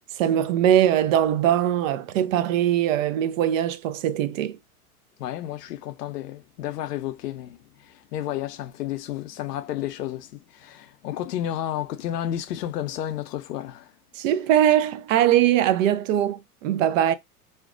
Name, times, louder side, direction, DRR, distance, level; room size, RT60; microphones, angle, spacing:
voice 1, 0.2-4.6 14.1-17.1, right 11 dB, 55° right, 0.5 m, -21 dB
voice 2, 5.2-13.9, left 11 dB, 85° left, 0.6 m, -32 dB
2.4 x 2.1 x 2.4 m
hypercardioid pair, 100°, 47 cm